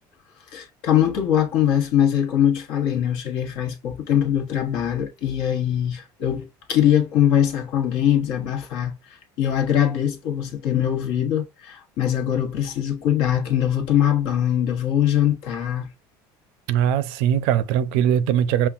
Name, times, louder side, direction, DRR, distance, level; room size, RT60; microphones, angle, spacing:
voice 1, 0.5-8.9 9.4-15.9, left 10 dB, 75° left, 1.2 m, -22 dB
voice 2, 16.7-18.7, right 9 dB, 80° right, 0.5 m, -20 dB
5.5 x 2.3 x 2.3 m
cardioid pair, 125°, 9 cm